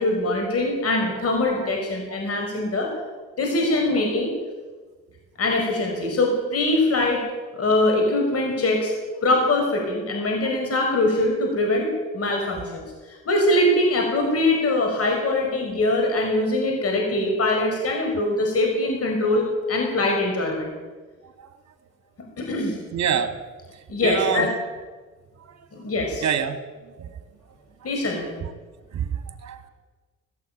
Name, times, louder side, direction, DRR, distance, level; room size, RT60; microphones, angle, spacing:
voice 1, 0.0-2.9 3.4-4.3 5.4-7.2 7.5-8.9 9.2-11.9 12.1-20.7 22.4-22.8 23.9-24.5 25.7-26.2 27.8-28.3, left 2 dB, 50° left, 2 dB, 5.5 m, -22 dB
voice 2, 22.9-23.4 24.0-24.5 25.4-25.5 26.2-26.6 27.0-27.2 28.9-29.7, right 7 dB, 60° right, 6 dB, 2.8 m, -26 dB
19.5 x 16.5 x 9.1 m, 1.4 s
cardioid pair, 90°, 30 cm